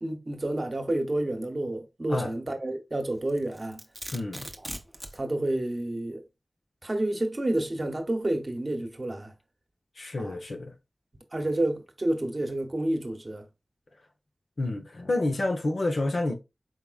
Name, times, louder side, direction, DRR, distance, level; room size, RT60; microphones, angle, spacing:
voice 1, 0.0-3.8 5.1-6.2 6.8-9.3 10.2-10.4 11.3-13.4, right 1 dB, 45° right, 1.0 m, -29 dB
Domestic sounds home sounds, 3.3-5.2, right 1 dB, 10° right, 0.8 m, -40 dB
voice 2, 4.1-4.5 10.0-10.7 14.6-16.3, left 2 dB, 70° left, 0.9 m, -29 dB
4.8 x 3.5 x 2.4 m
cardioid pair, 45°, 0 cm